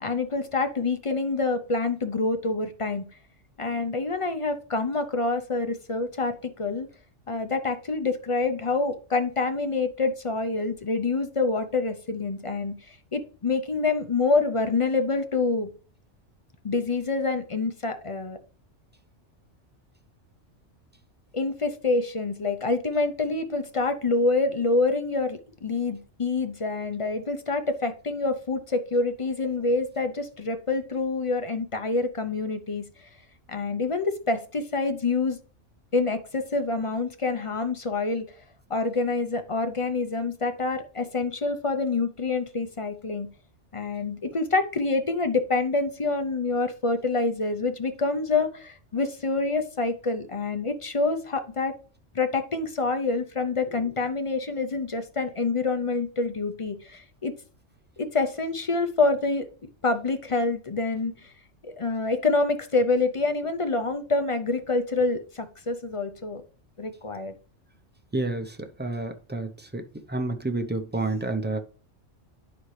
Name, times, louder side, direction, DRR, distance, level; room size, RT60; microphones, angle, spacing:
voice 1, 0.0-3.1 3.6-6.9 7.3-15.7 16.6-18.4 21.3-32.8 33.5-35.4 35.9-38.3 38.7-43.3 43.7-51.7 52.1-57.3 58.0-59.5 59.8-61.3 61.6-66.4 66.8-67.3, left 3 dB, 40° left, 0.5 m, -26 dB
voice 2, 68.1-69.8 70.1-71.6, right 2 dB, 15° right, 0.4 m, -29 dB
11.0 x 4.2 x 3.2 m
omnidirectional pair, 1.3 m